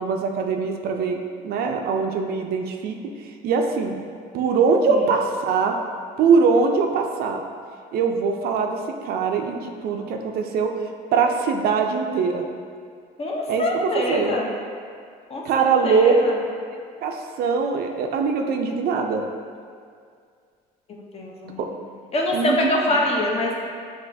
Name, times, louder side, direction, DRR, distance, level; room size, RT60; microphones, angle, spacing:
voice 1, 0.0-3.0 3.4-4.0 4.3-5.8 6.2-7.4 7.9-10.7 11.1-12.4 13.5-14.3 15.4-16.1 17.0-19.2 21.6-21.7 22.3-22.6, right 5 dB, 65° right, 3 dB, 0.4 m, -22 dB
voice 2, 13.2-14.5 15.3-16.4 21.1-21.7 22.1-23.5, left 1 dB, 35° left, -1 dB, 0.6 m, -24 dB
6.1 x 2.4 x 2.6 m, 2.1 s
cardioid pair, 110°, 17 cm